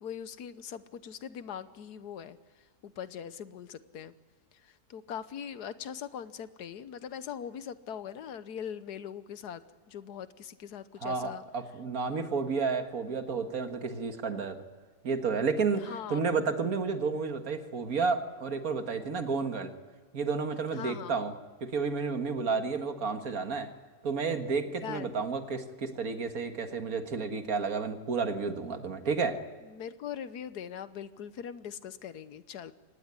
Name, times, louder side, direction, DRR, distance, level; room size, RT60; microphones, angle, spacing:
voice 1, 0.0-2.4 2.8-4.1 4.6-9.6 9.9-11.4 15.8-16.4 20.7-21.2 24.8-25.2 29.7-32.7, left 8 dB, 80° left, 14 dB, 1.5 m, -41 dB
voice 2, 11.0-14.6 15.0-19.7 20.1-21.3 21.6-23.7 24.0-29.4, right 4 dB, 65° right, 7 dB, 2.0 m, -31 dB
24.5 x 18.5 x 9.6 m, 1.5 s
omnidirectional pair, 1.7 m